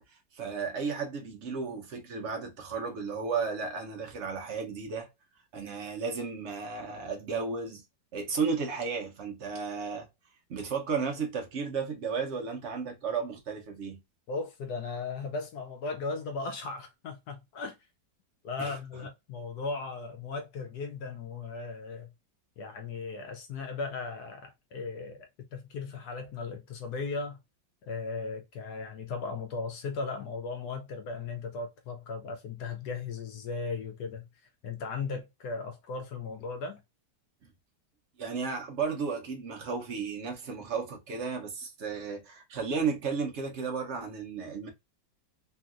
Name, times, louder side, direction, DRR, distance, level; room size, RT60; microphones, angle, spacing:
voice 1, 0.1-5.1 5.5-7.8 8.1-10.1 10.5-14.0 18.6-18.8 38.2-44.7, right 5 dB, 85° right, 0.6 m, -34 dB
voice 2, 14.3-17.8 18.4-22.1 22.6-27.4 27.8-36.8, left 4 dB, 70° left, 1.0 m, -37 dB
3.0 x 2.7 x 2.3 m
omnidirectional pair, 2.0 m